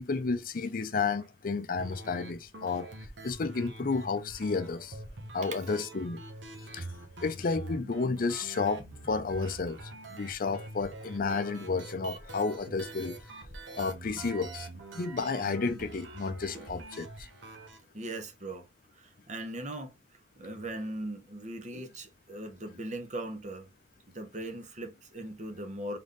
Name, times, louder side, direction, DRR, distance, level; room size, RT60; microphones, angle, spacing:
voice 1, 0.0-2.9 3.2-5.0 5.3-6.2 6.6-6.9 7.2-13.2 13.7-14.7 14.9-17.3 20.7-20.8 21.7-21.9, left 4 dB, 50° left, 0.5 m, -32 dB
sound 1, 1.8-17.8, right 2 dB, 80° right, 1.3 m, -45 dB
voice 2, 17.9-18.7 19.0-19.9 20.4-23.7 24.1-26.0, right 1 dB, 40° right, 1.0 m, -39 dB
3.8 x 3.5 x 3.9 m
head